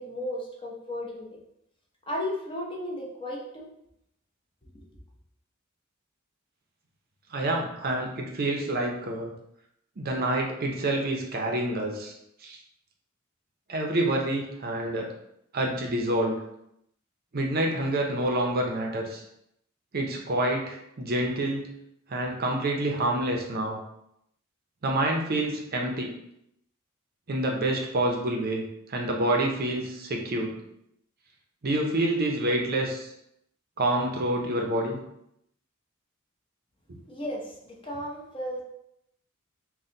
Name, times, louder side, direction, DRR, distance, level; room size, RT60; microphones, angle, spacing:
voice 1, 0.0-1.4 2.1-3.7 4.6-4.9 37.1-38.6, left 1 dB, 25° left, -2 dB, 0.8 m, -35 dB
voice 2, 7.3-9.3 10.0-12.1 12.4-12.6 13.7-15.1 15.5-16.4 17.3-19.2 19.9-21.7 22.1-23.8 24.8-26.1 27.3-28.6 28.9-30.6 31.6-33.1 33.8-35.0 36.9-37.0, right 1 dB, 45° right, 1 dB, 0.6 m, -27 dB
4.2 x 2.2 x 3.8 m, 0.78 s
head